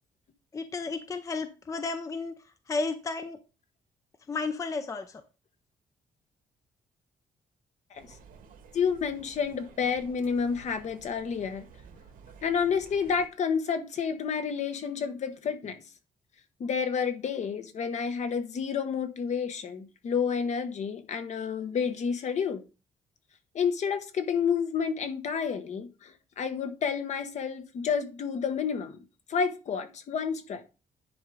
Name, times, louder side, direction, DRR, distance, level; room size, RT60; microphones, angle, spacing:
voice 1, 0.5-2.3 2.7-3.4 4.3-5.2, left 3 dB, 20° left, 0.6 m, -32 dB
sound 1, 7.9-13.3, right 6 dB, 80° right, 1.8 m, -53 dB
voice 2, 8.7-11.7 12.4-15.8 16.6-22.6 23.5-29.0 29.3-30.6, left 6 dB, 55° left, 1.1 m, -30 dB
10.0 x 3.8 x 4.8 m
cardioid pair, 135°, 14 cm